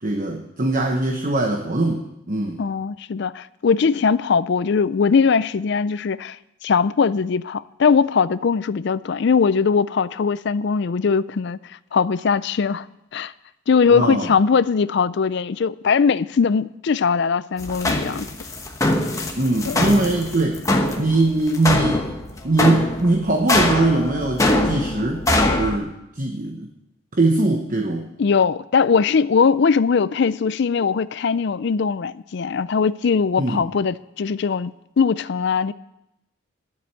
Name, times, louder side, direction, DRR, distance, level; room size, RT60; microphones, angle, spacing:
voice 1, 0.0-2.6 13.9-14.3 19.4-20.6 21.0-22.0 22.4-25.3 25.6-26.7 27.1-28.1 33.4-33.6, right 2 dB, 40° right, 1.0 m, -21 dB
voice 2, 2.6-6.4 6.6-11.6 11.9-12.8 13.1-13.3 13.7-18.3 19.7-19.8 28.2-34.7 35.0-35.7, left 5 dB, 55° left, 0.4 m, -20 dB
sound 1, 17.6-25.8, left 1 dB, 15° left, 1.1 m, -22 dB
11.0 x 7.8 x 8.9 m
head